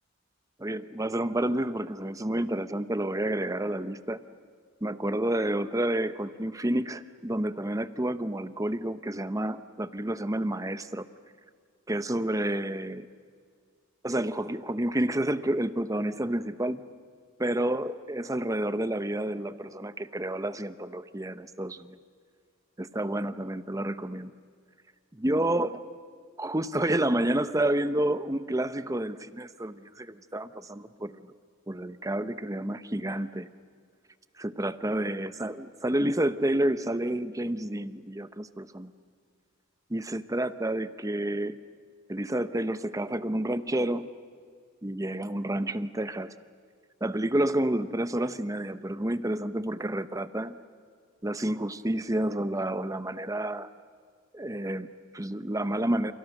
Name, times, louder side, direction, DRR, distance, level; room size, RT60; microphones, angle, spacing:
voice 1, 0.6-4.2 4.8-11.1 11.9-13.1 14.0-16.8 17.4-22.0 22.8-24.3 25.2-25.8 26.4-31.3 31.7-33.5 34.4-38.9 39.9-41.6 42.1-44.1 44.8-46.3 47.0-50.6 51.2-53.7 54.3-56.1, right 1 dB, 15° right, 12 dB, 0.9 m, -29 dB
29.5 x 29.5 x 6.6 m, 2.1 s
head